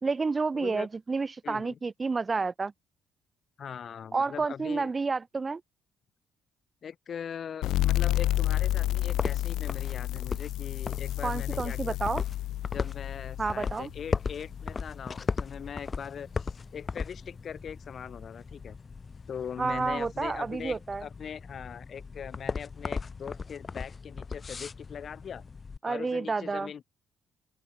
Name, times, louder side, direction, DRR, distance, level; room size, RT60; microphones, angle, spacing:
voice 1, 0.0-2.7 4.1-5.6 11.2-12.2 13.4-13.9 19.6-21.1 25.8-26.7, right 4 dB, 20° right, 0.8 m, -30 dB
voice 2, 0.5-0.9 1.4-1.8 3.6-4.9 6.8-12.0 12.7-18.8 19.3-25.4 25.8-26.8, left 7 dB, 45° left, 2.9 m, -41 dB
sound 1, 7.6-14.9, left 15 dB, 90° left, 0.8 m, -30 dB
sound 2, 8.1-25.8, left 5 dB, 25° left, 1.5 m, -38 dB
open air
cardioid pair, 140°, 0 cm